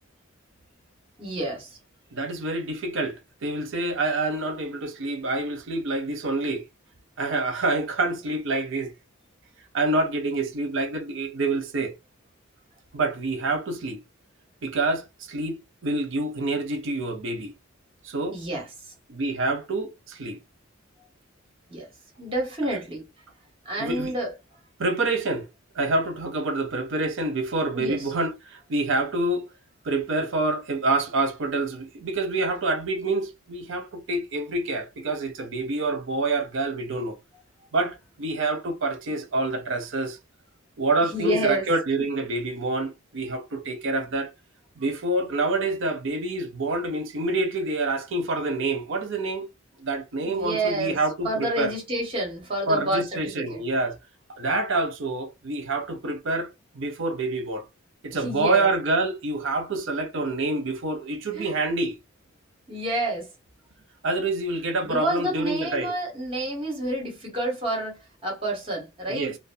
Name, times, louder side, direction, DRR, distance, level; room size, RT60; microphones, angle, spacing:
voice 1, 1.2-1.7 18.3-18.7 21.7-21.9 22.2-23.0 23.6-24.3 27.7-28.0 41.0-41.6 50.2-51.0 51.2-53.6 58.1-58.7 61.3-61.5 62.7-63.3 64.8-69.3, right 1 dB, 25° right, 1.3 m, -29 dB
voice 2, 2.1-6.6 7.2-8.9 9.7-12.0 12.9-14.0 14.6-17.5 18.0-18.4 19.1-20.4 23.8-24.1 24.8-25.5 25.8-29.5 29.8-37.2 37.7-40.2 40.8-44.3 44.8-49.5 49.8-51.7 52.7-54.0 54.4-57.6 58.0-62.0 64.0-65.9 69.1-69.4, right 2 dB, 65° right, 0.6 m, -27 dB
2.5 x 2.2 x 2.5 m
head